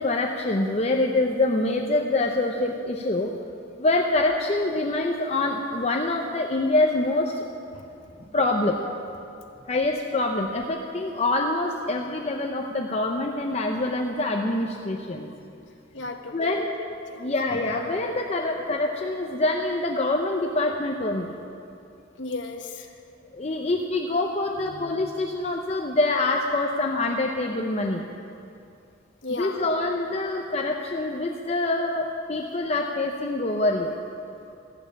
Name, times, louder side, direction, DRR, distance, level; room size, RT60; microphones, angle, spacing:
voice 1, 0.0-3.3 3.8-7.4 8.3-8.9 9.7-15.3 16.3-16.7 17.2-21.3 23.3-28.0 29.3-34.0, left 2 dB, 35° left, 2 dB, 0.6 m, -25 dB
voice 2, 7.7-8.2 9.5-9.6 15.2-16.7 17.1-17.3 22.2-23.0 24.7-25.0 29.2-29.7 30.2-30.3, left 3 dB, 70° left, 4 dB, 1.1 m, -37 dB
14.0 x 7.2 x 8.5 m, 2.6 s
head